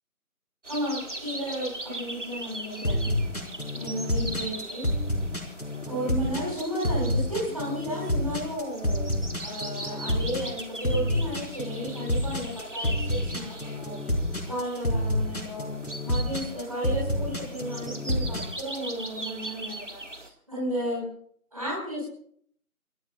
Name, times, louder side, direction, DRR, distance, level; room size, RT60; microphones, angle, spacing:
sound 1, 0.6-20.3, right 1 dB, 50° right, 1.8 m, -40 dB
voice 1, 0.7-3.0 3.7-4.8 5.9-9.1 9.4-14.1 14.4-15.7 16.0-21.0 21.5-22.0, equal, 25° right, -5 dB, 5.4 m, -33 dB
sound 2, 2.8-18.8, left 1 dB, 70° left, 5.2 m, -28 dB
26.5 x 20.0 x 2.5 m, 0.63 s
figure-of-eight pair, 175°, 45 cm